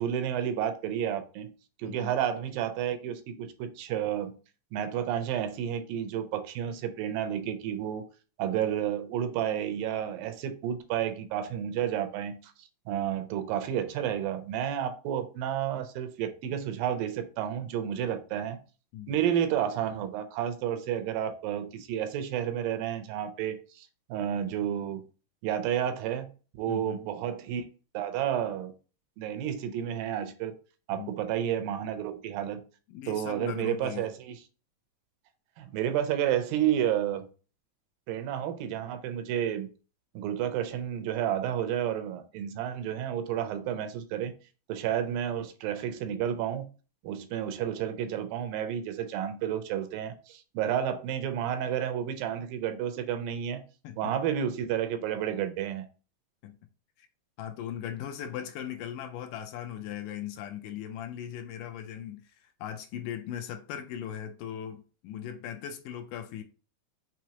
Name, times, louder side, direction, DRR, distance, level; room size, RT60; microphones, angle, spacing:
voice 1, 0.0-1.5 1.8-4.4 4.7-8.0 8.4-18.6 19.1-25.0 25.4-26.3 26.6-27.6 27.9-28.7 29.2-30.5 30.9-32.6 33.1-34.4 35.6-37.3 38.1-39.7 40.2-44.3 44.7-46.7 47.0-53.6 54.0-55.9, right 10 dB, 90° right, 2.4 m, -31 dB
voice 2, 1.8-2.1 18.9-19.1 26.7-27.0 31.0-31.1 32.9-34.1 53.8-54.1 56.4-56.6 57.0-57.1 57.4-66.4, left 10 dB, 80° left, 2.1 m, -39 dB
6.1 x 3.0 x 2.9 m
omnidirectional pair, 3.9 m